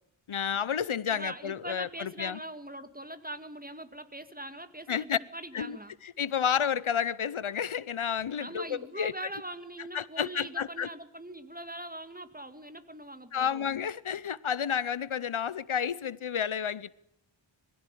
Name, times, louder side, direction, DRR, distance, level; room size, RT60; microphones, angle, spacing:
voice 1, 0.3-2.4 4.9-5.2 5.5-5.8 6.0-9.1 9.9-10.9 13.3-16.9, left 8 dB, 80° left, 0.7 m, -31 dB
voice 2, 1.1-5.9 8.4-13.7, right 1 dB, 20° right, 2.0 m, -42 dB
21.5 x 15.5 x 9.9 m
wide cardioid pair, 40°, 48 cm